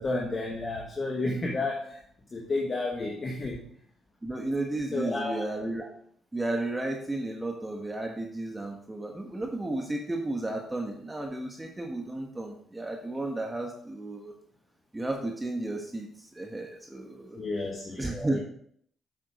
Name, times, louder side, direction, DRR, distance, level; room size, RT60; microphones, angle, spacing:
voice 1, 0.0-2.0 2.3-3.6 4.9-5.5 17.4-18.4, left 2 dB, 35° left, 0 dB, 1.7 m, -31 dB
voice 2, 4.2-5.9 6.3-14.3 14.9-17.4 18.0-18.4, right 2 dB, 15° right, 1 dB, 1.4 m, -33 dB
8.1 x 7.2 x 5.0 m, 0.65 s
cardioid pair, 90°, 0 cm